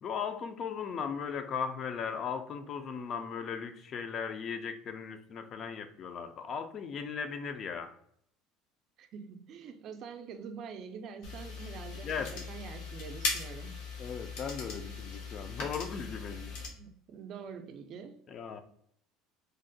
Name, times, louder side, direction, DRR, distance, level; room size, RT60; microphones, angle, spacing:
voice 1, 0.0-7.9 12.0-12.4 14.0-16.6 18.3-18.6, left 6 dB, 40° left, 9 dB, 0.4 m, -37 dB
voice 2, 9.0-13.8 16.5-18.3, right 6 dB, 50° right, 7 dB, 0.4 m, -45 dB
sound 1, 11.2-16.7, left 4 dB, 85° left, 1.0 m, -39 dB
3.7 x 2.1 x 2.6 m, 0.68 s
supercardioid pair, 120°, 0 cm